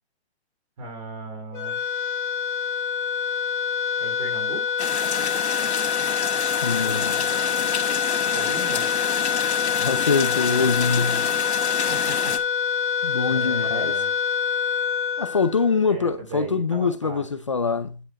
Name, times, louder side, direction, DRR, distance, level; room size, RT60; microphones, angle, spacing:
voice 1, 0.8-1.8 4.0-4.8 8.3-8.9 11.9-12.3 13.2-14.1 15.9-17.2, right 3 dB, 35° right, 2.9 m, -37 dB
sound 1, 1.5-16.1, left 7 dB, 50° left, 1.6 m, -26 dB
sound 2, 4.8-12.4, left 7 dB, 80° left, 1.8 m, -28 dB
voice 2, 6.6-7.2 9.7-11.3 13.0-13.9 15.2-18.0, left 4 dB, 30° left, 0.5 m, -24 dB
10.0 x 5.2 x 5.1 m
hypercardioid pair, 175°, 32 cm